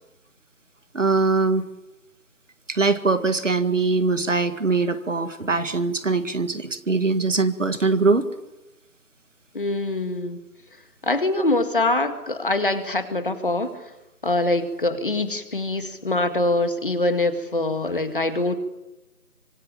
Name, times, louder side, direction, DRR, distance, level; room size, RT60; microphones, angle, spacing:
voice 1, 0.9-1.7 2.7-8.2, right 3 dB, 50° right, 11 dB, 2.0 m, -22 dB
voice 2, 9.5-10.4 11.0-13.8 14.2-18.5, left 2 dB, 35° left, 9 dB, 2.0 m, -24 dB
25.5 x 24.0 x 8.8 m, 1.0 s
figure-of-eight pair, 170°, 46 cm